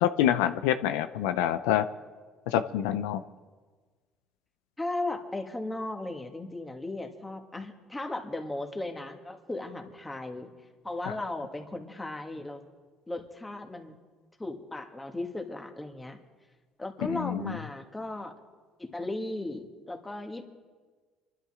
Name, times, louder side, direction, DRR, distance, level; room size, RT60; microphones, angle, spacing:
voice 1, 0.0-1.8 2.5-3.2 11.1-11.2 17.1-17.6, left 11 dB, 85° left, 10 dB, 0.5 m, -26 dB
voice 2, 4.8-10.5 10.8-12.6 13.1-14.0 14.4-16.2 16.8-18.3 18.8-20.4, left 2 dB, 15° left, 4 dB, 2.1 m, -36 dB
25.5 x 11.5 x 3.7 m, 1.4 s
supercardioid pair, 75°, 0 cm